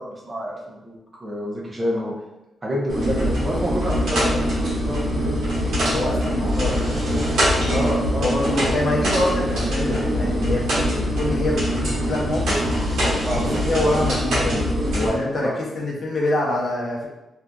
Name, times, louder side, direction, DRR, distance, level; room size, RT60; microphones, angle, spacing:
voice 1, 0.0-2.1 2.6-5.3 7.7-8.8 13.2-13.4 15.4-15.6, equal, 25° right, -4 dB, 0.6 m, -28 dB
sound 1, 2.9-15.1, equal, 90° right, 0.9 m, -23 dB
voice 2, 5.9-7.6 8.2-12.6 13.6-15.5 15.7-17.1, left 1 dB, 50° left, -3 dB, 0.6 m, -25 dB
2.6 x 2.3 x 2.2 m, 0.95 s
cardioid pair, 125°, 0 cm